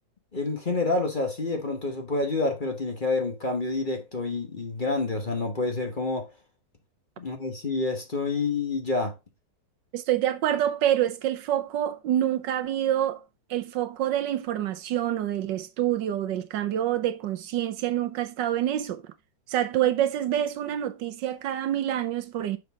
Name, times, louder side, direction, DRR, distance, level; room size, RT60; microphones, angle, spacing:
voice 1, 0.3-6.3 7.2-9.1, left 3 dB, 30° left, 1.2 m, -28 dB
voice 2, 9.9-13.2 13.5-19.0 19.5-22.6, right 11 dB, 80° right, 1.5 m, -27 dB
6.4 x 5.8 x 3.6 m
omnidirectional pair, 1.9 m